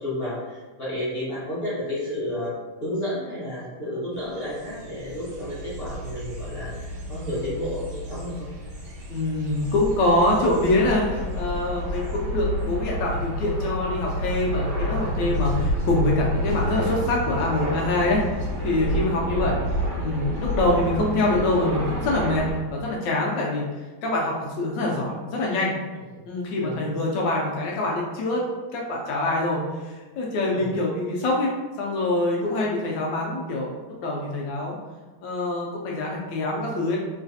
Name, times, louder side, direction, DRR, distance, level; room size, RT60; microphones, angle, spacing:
voice 1, 0.0-2.5 2.8-8.5 19.3-19.6 26.5-26.8 30.5-30.7, left 1 dB, 40° left, -10 dB, 0.9 m, -31 dB
sound 1, 4.2-22.6, equal, 70° right, 1.6 m, -29 dB
voice 2, 9.1-19.6 20.0-23.7 24.0-25.8 26.3-28.4 28.7-33.7 34.0-34.8 35.2-37.0, left 2 dB, 75° left, -2 dB, 1.2 m, -25 dB
3.2 x 3.1 x 2.6 m, 1.2 s
omnidirectional pair, 2.2 m